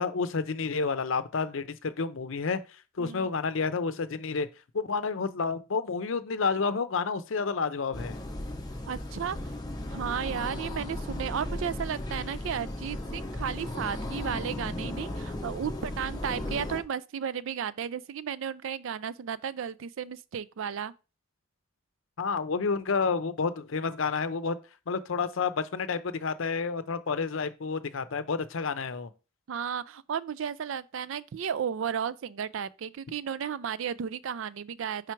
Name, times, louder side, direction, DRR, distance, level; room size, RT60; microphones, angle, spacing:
voice 1, 0.0-2.6 3.0-4.5 4.7-8.2 22.2-24.6 24.9-29.1, left 5 dB, 75° left, 0.6 m, -30 dB
voice 2, 3.0-3.3 8.9-9.4 9.9-20.9 29.5-35.1, right 7 dB, 75° right, 0.4 m, -34 dB
sound 1, 7.9-16.8, left 1 dB, 20° left, 0.7 m, -36 dB
5.0 x 4.6 x 4.5 m
head